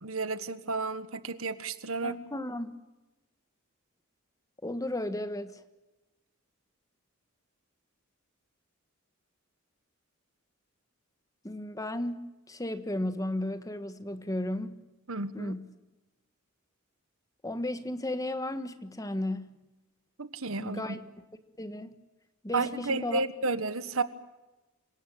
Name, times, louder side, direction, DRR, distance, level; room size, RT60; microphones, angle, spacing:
voice 1, 0.0-2.2 15.1-15.5 20.2-21.0 22.5-24.0, right 3 dB, 80° right, 1.5 m, -32 dB
voice 2, 2.0-2.7 4.6-5.6 11.4-14.8 15.3-15.7 17.4-19.6 20.6-21.0 21.6-22.0 22.4-23.2, left 1 dB, 15° left, 1.5 m, -34 dB
26.5 x 17.5 x 8.6 m
head